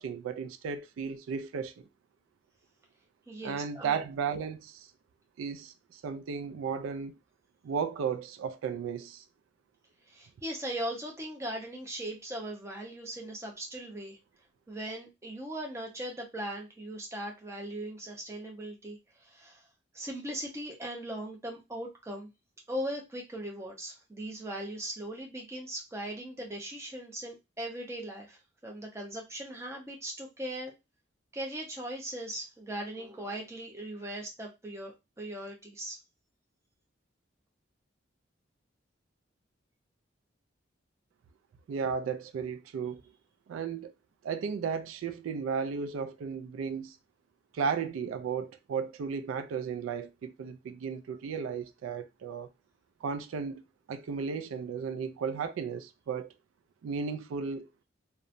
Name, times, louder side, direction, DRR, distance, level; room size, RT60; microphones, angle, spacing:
voice 1, 0.0-1.8 3.4-4.9 5.4-7.2 7.6-9.2 41.7-43.0 43.5-43.9 44.2-47.0 47.5-52.5 53.0-53.6 53.9-56.3 56.8-57.7, right 6 dB, 90° right, 0.3 m, -34 dB
voice 2, 3.3-4.0 10.1-14.2 14.7-19.6 19.9-22.3 22.7-30.7 31.3-36.0, right 1 dB, 15° right, 0.6 m, -39 dB
2.8 x 2.1 x 2.5 m
head